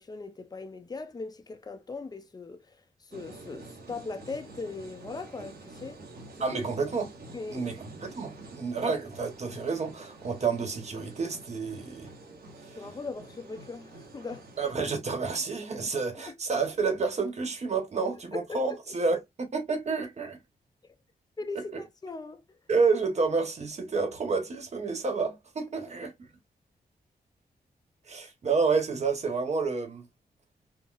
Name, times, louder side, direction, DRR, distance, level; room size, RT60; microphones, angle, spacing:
voice 1, 0.0-6.0 6.5-6.6 7.3-7.7 12.7-14.4 15.7-15.8 16.1-16.3 18.3-18.8 20.8-20.9 21.4-22.4, left 3 dB, 25° left, 0.5 m, -39 dB
sound 1, 3.1-14.7, right 2 dB, 85° right, 1.0 m, -48 dB
voice 2, 6.4-7.1 7.5-12.1 14.6-20.4 21.7-21.8 22.7-26.1 28.1-30.1, right 4 dB, 45° right, 1.0 m, -29 dB
3.8 x 2.0 x 2.4 m
wide cardioid pair, 115°, 16 cm